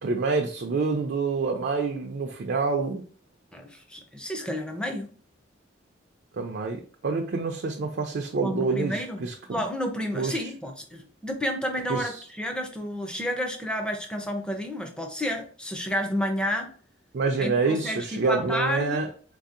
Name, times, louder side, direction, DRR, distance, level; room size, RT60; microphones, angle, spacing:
voice 1, 0.0-3.0 6.3-9.7 10.1-10.5 11.9-12.2 17.1-19.1, right 4 dB, 55° right, 2 dB, 0.4 m, -27 dB
voice 2, 3.5-5.1 8.4-16.7 17.4-19.0, equal, 5° left, 5 dB, 0.5 m, -31 dB
3.9 x 2.7 x 2.4 m, 0.43 s
head